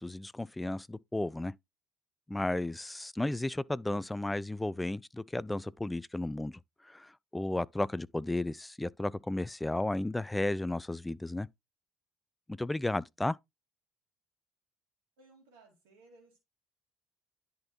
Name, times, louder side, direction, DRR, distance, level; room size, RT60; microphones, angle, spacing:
voice 1, 0.0-1.5 2.3-11.5 12.5-13.4, left 2 dB, 10° left, 0.3 m, -34 dB
voice 2, 15.2-16.4, right 3 dB, 75° right, 2.0 m, -60 dB
10.5 x 4.1 x 2.8 m
figure-of-eight pair, 55°, 0 cm